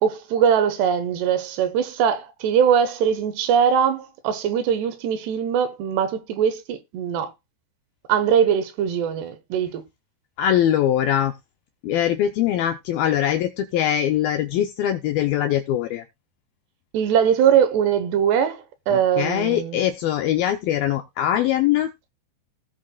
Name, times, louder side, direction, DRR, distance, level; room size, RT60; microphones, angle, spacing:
voice 1, 0.0-7.3 8.1-9.8 16.9-19.8, right 8 dB, 75° right, 3.1 m, -21 dB
voice 2, 10.4-11.3 11.8-16.0 18.9-21.9, left 11 dB, 80° left, 2.1 m, -22 dB
18.0 x 6.1 x 2.3 m
omnidirectional pair, 5.0 m